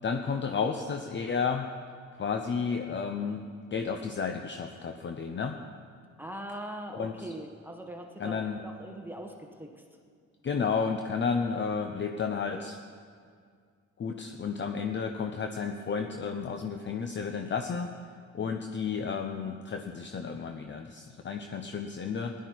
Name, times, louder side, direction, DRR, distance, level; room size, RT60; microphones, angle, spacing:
voice 1, 0.0-1.7 2.2-3.4 3.7-5.6 6.9-7.3 8.2-8.6 10.4-12.8 14.0-18.0 18.3-22.3, left 5 dB, 40° left, 5 dB, 0.8 m, -32 dB
voice 2, 6.2-9.8, right 1 dB, 5° right, 2 dB, 1.3 m, -41 dB
16.0 x 11.5 x 4.7 m, 2.1 s
cardioid pair, 90°, 30 cm